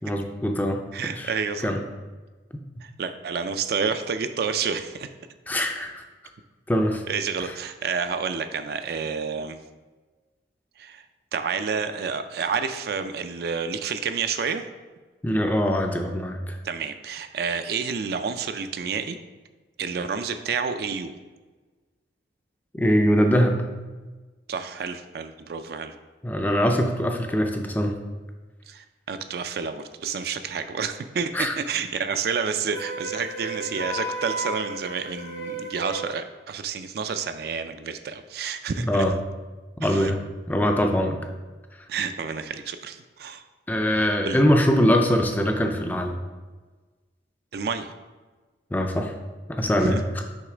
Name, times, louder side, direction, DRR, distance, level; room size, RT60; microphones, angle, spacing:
voice 1, 0.0-0.8 1.1-1.3 1.6-1.8 5.5-6.0 6.7-7.0 7.4-7.5 15.2-16.6 22.7-23.6 26.2-28.0 31.3-31.5 38.8-39.1 39.8-40.2 40.5-41.2 43.7-46.2 48.7-49.1 49.5-50.0, equal, 10° left, 4 dB, 0.4 m, -22 dB
voice 2, 0.9-1.7 2.8-5.1 7.1-9.6 10.8-11.0 11.3-14.7 16.6-19.2 19.8-21.2 24.5-25.9 28.7-39.0 39.8-40.1 41.9-43.4 44.2-44.4 47.5-47.9 49.8-50.0, right 5 dB, 55° right, 9 dB, 0.3 m, -29 dB
Wind instrument woodwind instrument, 32.7-36.1, right 2 dB, 85° left, 1.7 m, -33 dB
6.4 x 3.1 x 4.9 m, 1.3 s
head